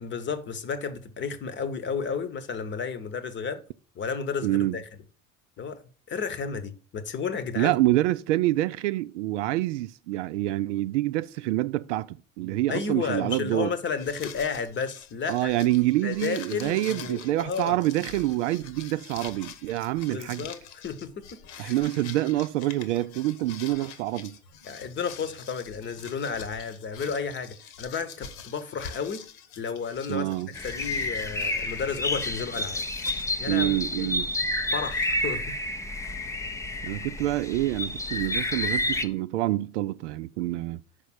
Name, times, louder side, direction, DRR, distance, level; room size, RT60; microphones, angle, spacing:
voice 1, 0.0-3.6 3.9-4.8 5.6-5.8 6.1-7.7 12.7-15.5 16.0-17.8 20.1-20.6 20.8-21.7 24.7-29.3 29.6-30.3 30.6-32.8 33.4-33.7 34.0-34.2 34.7-35.6, left 5 dB, 25° left, 1.0 m, -32 dB
voice 2, 4.4-4.8 7.6-13.7 15.3-20.5 21.6-24.4 30.1-30.5 33.5-34.3 36.8-40.8, right 16 dB, 60° right, 0.5 m, -27 dB
sound 1, 13.9-33.3, left 7 dB, 55° left, 1.2 m, -45 dB
sound 2, 30.5-39.1, left 2 dB, 10° left, 0.5 m, -30 dB
6.2 x 5.1 x 6.2 m
figure-of-eight pair, 75°, 42 cm